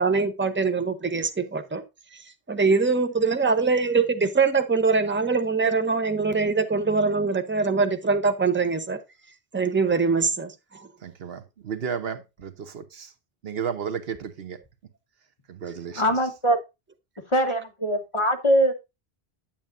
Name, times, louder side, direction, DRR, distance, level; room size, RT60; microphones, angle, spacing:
voice 1, 0.0-1.8 2.5-9.0 9.5-10.8, right 4 dB, 15° right, 0.7 m, -23 dB
voice 2, 11.0-13.1 13.4-14.6 15.5-16.0, right 7 dB, 75° right, 1.1 m, -33 dB
voice 3, 16.0-16.6 17.3-18.7, equal, 30° left, 1.0 m, -22 dB
8.9 x 8.7 x 2.6 m
omnidirectional pair, 1.0 m